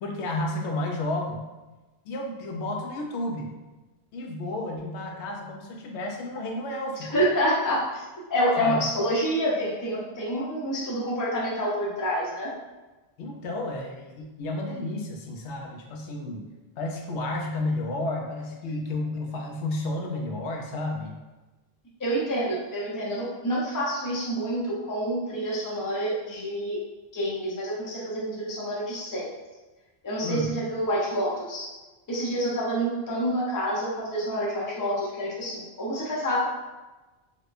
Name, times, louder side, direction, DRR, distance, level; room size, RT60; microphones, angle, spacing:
voice 1, 0.0-1.4 2.1-3.5 4.1-7.2 8.6-8.8 10.3-10.5 13.2-16.5 16.8-21.1 30.2-30.6, left 2 dB, 80° left, 1 dB, 0.9 m, -32 dB
voice 2, 7.1-8.0 8.3-12.5 22.0-26.8 27.1-29.3 30.0-31.7 32.1-36.5, equal, 20° left, -5 dB, 0.6 m, -27 dB
4.1 x 2.2 x 2.5 m, 1.1 s
omnidirectional pair, 1.1 m